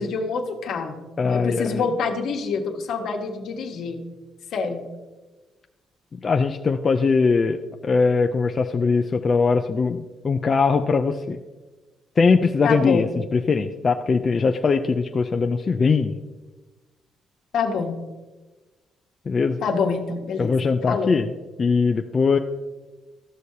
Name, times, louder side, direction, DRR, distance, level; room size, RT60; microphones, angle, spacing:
voice 1, 0.0-4.0 4.5-4.8 12.6-13.1 17.5-17.9 19.6-20.5 20.9-21.2, left 5 dB, 75° left, 3 dB, 1.2 m, -26 dB
voice 2, 1.2-1.8 6.1-11.4 12.2-16.2 19.3-19.6 20.4-21.3 21.6-22.4, left 4 dB, 40° left, 5 dB, 0.4 m, -21 dB
13.5 x 6.3 x 2.8 m, 1.2 s
cardioid pair, 90°, 0 cm